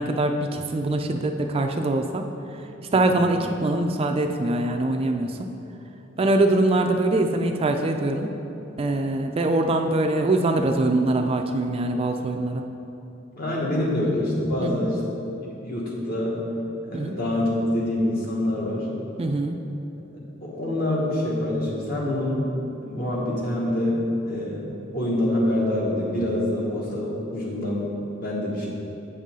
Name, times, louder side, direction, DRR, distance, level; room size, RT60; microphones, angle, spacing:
voice 1, 0.0-2.3 2.5-2.6 2.9-5.5 6.2-8.3 8.8-12.6 14.6-14.9 16.9-17.2 19.2-19.6, right 2 dB, 30° right, 4 dB, 0.3 m, -23 dB
voice 2, 2.9-3.3 13.4-15.0 15.4-16.4 16.8-18.9 20.1-22.5 22.8-28.7, left 1 dB, 50° left, -4 dB, 1.5 m, -26 dB
8.0 x 5.5 x 3.7 m, 3.0 s
head